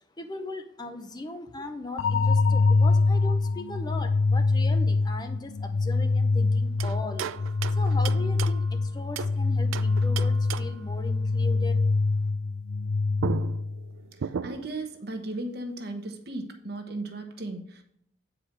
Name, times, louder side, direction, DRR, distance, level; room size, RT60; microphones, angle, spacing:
voice 1, 0.0-7.3 7.7-11.8, left 2 dB, 20° left, 7 dB, 0.6 m, -38 dB
sound 1, 2.0-13.9, left 3 dB, 85° left, 0.4 m, -24 dB
sound 2, 6.8-9.4 9.7-10.9 12.8-12.9 13.2-14.8, right 6 dB, 90° right, 0.4 m, -36 dB
voice 2, 14.1-17.8, right 2 dB, 50° right, 5 dB, 1.1 m, -36 dB
8.8 x 5.0 x 6.1 m, 0.72 s
head